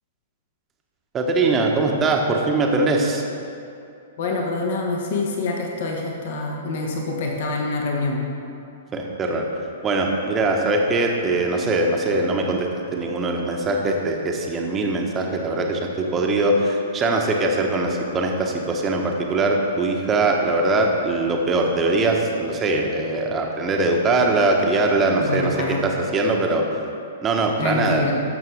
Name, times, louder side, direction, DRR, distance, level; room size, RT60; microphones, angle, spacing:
voice 1, 1.1-3.2 8.9-9.4 9.8-26.6 27.2-28.1, right 2 dB, 20° right, 1 dB, 1.0 m, -21 dB
voice 2, 4.2-8.2 25.2-25.8 27.6-28.1, left 3 dB, 50° left, 0 dB, 1.2 m, -26 dB
12.5 x 6.6 x 3.5 m, 2.6 s
figure-of-eight pair, 110°, 0 cm